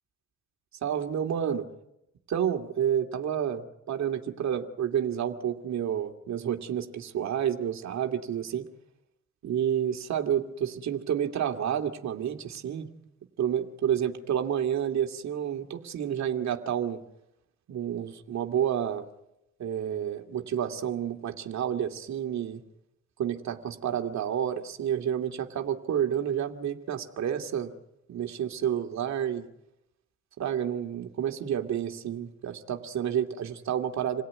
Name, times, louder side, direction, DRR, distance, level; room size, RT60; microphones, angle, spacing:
voice 1, 0.8-1.7 2.3-8.7 9.4-12.9 13.4-17.0 17.7-19.1 19.6-22.6 23.2-27.7 28.1-29.5 30.4-34.2, right 9 dB, 65° right, 4 dB, 2.4 m, -30 dB
28.0 x 17.5 x 9.5 m, 0.85 s
cardioid pair, 90°, 30 cm